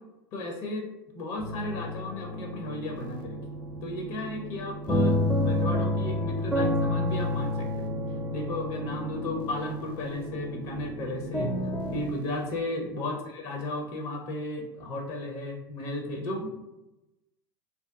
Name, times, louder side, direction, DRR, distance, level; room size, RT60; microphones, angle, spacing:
voice 1, 0.3-3.4 3.8-7.9 8.3-11.6 11.9-16.6, left 1 dB, 55° left, 1 dB, 0.6 m, -34 dB
sound 1, 1.4-12.1, left 1 dB, ahead, 0.4 m, -30 dB
sound 2, 2.9-12.6, right 4 dB, 65° right, 0.4 m, -42 dB
2.7 x 2.2 x 2.2 m, 0.96 s
hypercardioid pair, 85°, 12 cm